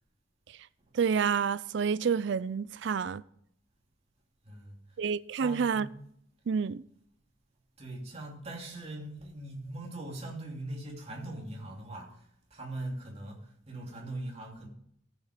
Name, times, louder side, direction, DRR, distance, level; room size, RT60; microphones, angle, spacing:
voice 1, 0.9-3.2 5.0-5.9 6.5-6.8, right 6 dB, 60° right, 0.4 m, -28 dB
voice 2, 4.4-4.8 5.3-5.8 7.8-14.7, right 1 dB, 30° right, 2.8 m, -41 dB
14.0 x 7.4 x 5.1 m
head